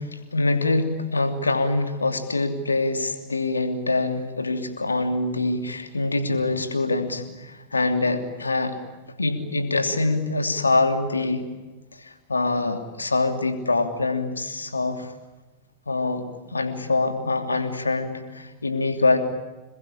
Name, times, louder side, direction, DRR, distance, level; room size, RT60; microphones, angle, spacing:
voice 1, 0.0-8.8 9.2-11.5 12.0-15.1 15.9-19.2, left 2 dB, 80° left, 7 dB, 2.9 m, -24 dB
27.0 x 21.5 x 10.0 m, 1.2 s
figure-of-eight pair, 90°, 0 cm